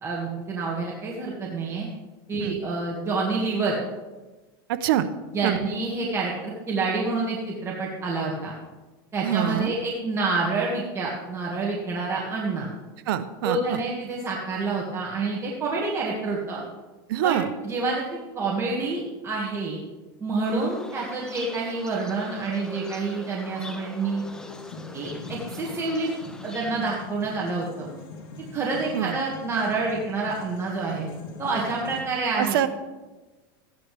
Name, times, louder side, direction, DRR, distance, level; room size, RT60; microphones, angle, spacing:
voice 1, 0.0-1.9 2.3-3.8 5.3-8.5 9.1-12.7 13.4-16.6 17.2-19.8 20.2-24.2 24.9-26.1 26.4-27.9 28.5-31.1 31.4-32.7, right 3 dB, 20° right, -3 dB, 1.9 m, -28 dB
voice 2, 4.7-5.1 5.4-5.6 9.2-9.7 13.1-13.8 17.1-17.5 28.9-29.2 32.4-32.7, right 11 dB, 75° right, 11 dB, 0.8 m, -25 dB
sound 1, 20.4-26.8, left 2 dB, 5° left, 0.8 m, -43 dB
sound 2, 24.2-32.0, left 4 dB, 75° left, 2.7 m, -42 dB
14.5 x 10.5 x 3.4 m, 1.2 s
supercardioid pair, 125°, 12 cm